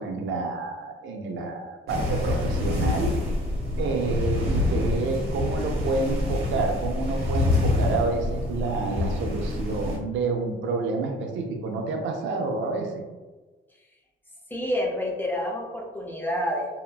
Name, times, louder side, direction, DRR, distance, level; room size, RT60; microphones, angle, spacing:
voice 1, 0.0-3.1 3.8-13.0, right 3 dB, 75° right, 3 dB, 0.5 m, -29 dB
sound 1, 1.9-10.0, left 2 dB, 50° right, 1.1 m, -26 dB
voice 2, 14.5-16.8, left 1 dB, 10° left, -1 dB, 0.5 m, -28 dB
2.8 x 2.2 x 2.3 m, 1.2 s
cardioid pair, 90°, 20 cm